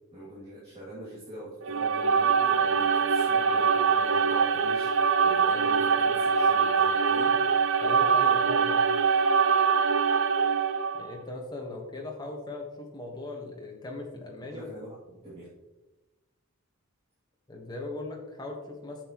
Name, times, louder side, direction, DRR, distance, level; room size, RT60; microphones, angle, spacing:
voice 1, 0.1-7.3 14.5-14.9 15.2-15.5, right 1 dB, 25° right, -10 dB, 2.5 m, -43 dB
sound 1, 1.6-11.1, right 6 dB, 60° right, 0.5 m, -23 dB
voice 2, 7.8-8.9 11.0-14.7 17.5-19.0, left 2 dB, 20° left, 0 dB, 1.3 m, -39 dB
9.1 x 7.8 x 3.0 m, 1.1 s
head